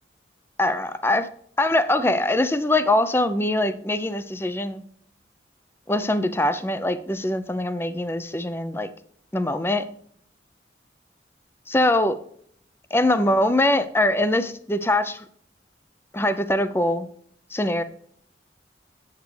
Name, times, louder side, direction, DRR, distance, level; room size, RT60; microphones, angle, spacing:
voice 1, 0.6-1.3 1.6-4.8 5.9-8.9 9.3-9.9 11.7-12.1 12.9-15.2 16.1-17.1 17.5-17.8, left 1 dB, 15° left, 12 dB, 0.5 m, -22 dB
8.1 x 8.1 x 3.2 m, 0.64 s
head